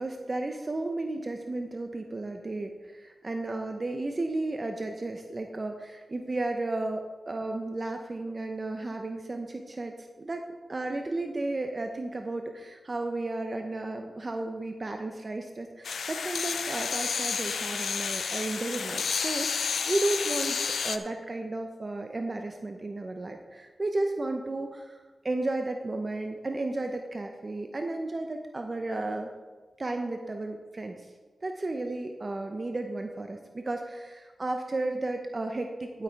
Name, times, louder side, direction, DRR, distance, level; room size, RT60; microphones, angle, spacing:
voice 1, 0.0-10.4 10.7-20.6 20.8-29.3 29.8-31.1 31.4-36.0, right 2 dB, 40° right, 5 dB, 0.8 m, -33 dB
sound 1, 15.8-21.0, left 6 dB, 85° left, 0.6 m, -30 dB
11.0 x 8.1 x 4.6 m, 1.4 s
cardioid pair, 70°, 0 cm